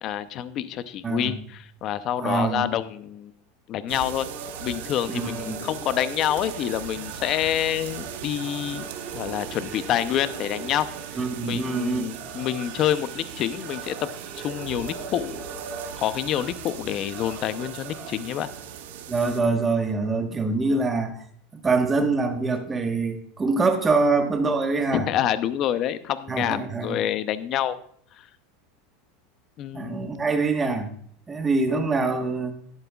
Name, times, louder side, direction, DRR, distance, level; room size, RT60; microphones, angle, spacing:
voice 1, 0.0-3.3 3.7-4.3 4.6-8.8 9.1-10.9 11.4-14.1 14.4-15.4 16.0-18.5 24.9-27.8 29.6-30.1, left 11 dB, 40° left, 14 dB, 0.6 m, -27 dB
voice 2, 1.0-1.4 2.2-2.7 5.1-5.6 11.2-12.1 19.1-21.2 21.5-25.1 26.3-27.0 29.7-30.9 31.3-32.5, right 3 dB, 15° right, 5 dB, 1.3 m, -24 dB
sound 1, 3.9-19.5, right 5 dB, 50° right, 2.1 m, -40 dB
sound 2, 3.9-19.4, right 9 dB, 85° right, 0.9 m, -40 dB
12.0 x 10.5 x 2.3 m, 0.63 s
supercardioid pair, 135°, 0 cm